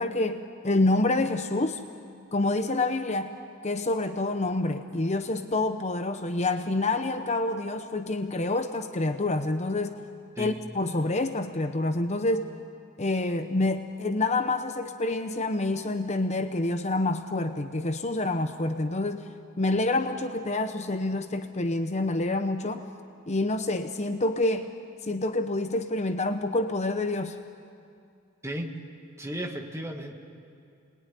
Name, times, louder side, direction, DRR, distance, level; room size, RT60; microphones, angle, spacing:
voice 1, 0.0-1.8 2.3-3.3 3.6-10.0 10.4-12.5 13.0-19.3 19.6-22.8 23.3-24.7 25.0-27.4, left 2 dB, 30° left, 7 dB, 0.9 m, -27 dB
voice 2, 28.4-28.8 29.2-30.2, right 1 dB, 15° right, 3 dB, 2.0 m, -34 dB
29.0 x 20.5 x 10.0 m, 2.4 s
head